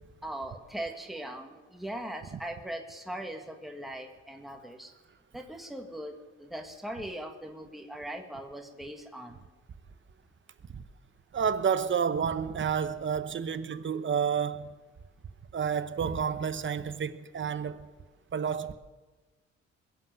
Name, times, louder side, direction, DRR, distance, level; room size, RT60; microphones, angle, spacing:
voice 1, 0.2-4.9 5.3-9.5, right 1 dB, ahead, 1.8 m, -40 dB
voice 2, 11.3-14.8 15.5-17.9 18.3-18.7, right 7 dB, 40° right, 0.9 m, -30 dB
21.5 x 7.9 x 7.7 m
cardioid pair, 90°, 30 cm